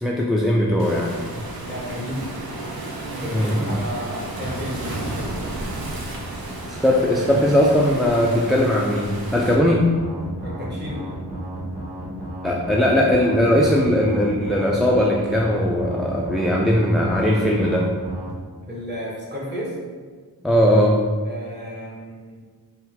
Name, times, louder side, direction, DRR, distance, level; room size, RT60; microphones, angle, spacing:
voice 1, 0.0-1.1 3.3-3.5 6.7-9.9 12.4-17.9 20.4-21.0, equal, ahead, -3 dB, 0.3 m, -19 dB
Waves surf, 0.8-9.5, right 1 dB, 60° right, 0.7 m, -32 dB
voice 2, 1.6-2.3 3.1-5.0 10.4-11.0 18.7-19.7 21.2-22.4, equal, 25° right, -6 dB, 1.3 m, -32 dB
sound 1, 9.3-18.3, right 1 dB, 80° right, 1.1 m, -33 dB
4.1 x 2.2 x 3.9 m, 1.5 s
wide cardioid pair, 45°, 41 cm